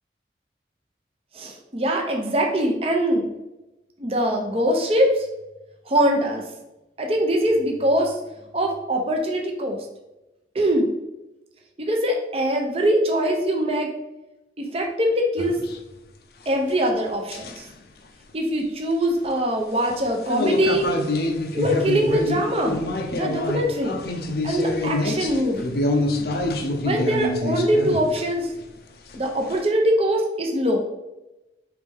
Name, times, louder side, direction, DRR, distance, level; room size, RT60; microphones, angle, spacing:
voice 1, 1.3-3.3 4.0-5.2 5.9-6.4 7.0-8.2 8.5-9.8 10.5-10.9 11.8-13.9 14.6-15.6 16.5-17.6 18.3-20.9 21.5-24.0 24.4-25.7 26.8-28.5 29.1-30.9, equal, 35° right, 2 dB, 0.7 m, -22 dB
sound 1, 15.4-15.8 17.3-17.7 19.9-28.6 29.1-29.6, left 1 dB, 55° left, 0.5 m, -26 dB
4.8 x 3.2 x 3.4 m, 0.98 s
head